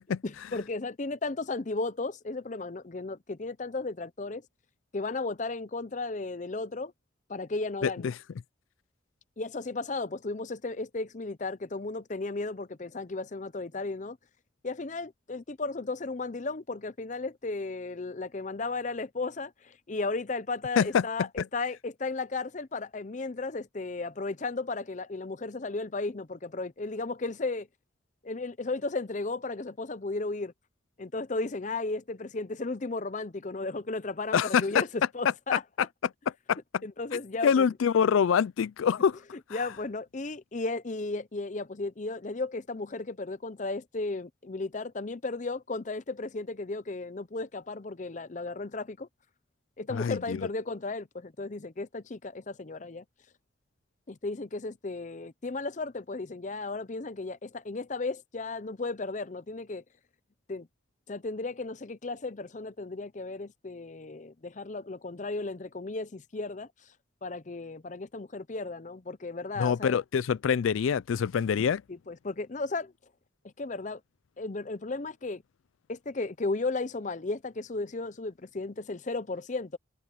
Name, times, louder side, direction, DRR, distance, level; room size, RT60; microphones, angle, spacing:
voice 1, 0.2-4.4 4.9-6.9 7.3-8.1 9.4-14.2 14.6-27.7 28.2-30.5 31.0-35.6 36.8-37.7 39.5-49.1 49.8-53.0 54.1-59.8 60.5-60.7 61.1-66.7 67.2-70.0 71.9-72.9 73.6-74.0 74.4-75.4 75.9-79.8, left 3 dB, 40° left, 0.6 m, -34 dB
voice 2, 7.8-8.1 20.8-21.1 21.4-21.5 34.3-34.6 36.5-36.6 37.4-39.2 49.9-50.4 69.6-71.8, left 7 dB, 90° left, 0.4 m, -25 dB
head